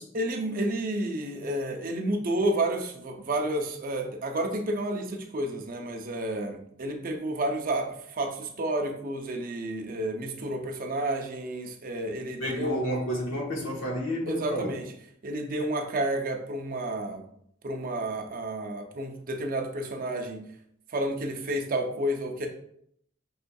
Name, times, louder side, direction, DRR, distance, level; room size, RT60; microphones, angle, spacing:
voice 1, 0.1-12.8 14.3-14.9 15.2-17.2 17.6-20.4 20.9-22.5, right 1 dB, 45° right, 3 dB, 0.5 m, -30 dB
voice 2, 12.4-14.7, equal, 75° left, -2 dB, 1.1 m, -30 dB
5.4 x 2.6 x 2.2 m, 0.68 s
head